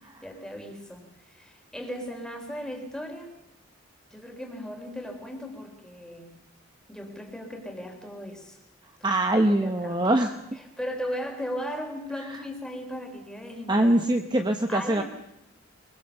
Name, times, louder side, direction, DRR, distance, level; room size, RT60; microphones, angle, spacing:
voice 1, 0.2-3.3 4.1-6.3 6.9-8.6 9.0-9.2 9.5-10.0 10.8-13.8 14.7-15.0, equal, 5° left, 3 dB, 3.5 m, -37 dB
voice 2, 9.0-10.3 12.3-12.4 13.7-15.0, right 1 dB, 20° right, 6 dB, 1.0 m, -23 dB
24.0 x 22.0 x 7.0 m, 0.83 s
head